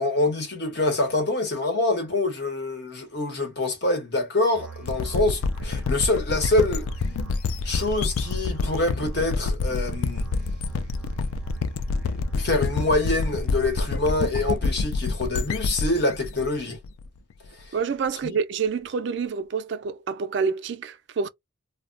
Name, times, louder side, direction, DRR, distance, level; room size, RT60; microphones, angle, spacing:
voice 1, 0.0-6.9 7.6-10.2 12.4-16.8 18.2-18.3, left 2 dB, 50° left, 0.9 m, -25 dB
Musical instrument, 4.5-14.5, right 6 dB, 5° right, 0.6 m, -42 dB
sound 1, 4.9-17.5, left 4 dB, 80° left, 0.3 m, -27 dB
voice 2, 17.7-21.3, right 5 dB, 55° right, 0.3 m, -27 dB
2.2 x 2.0 x 3.7 m
head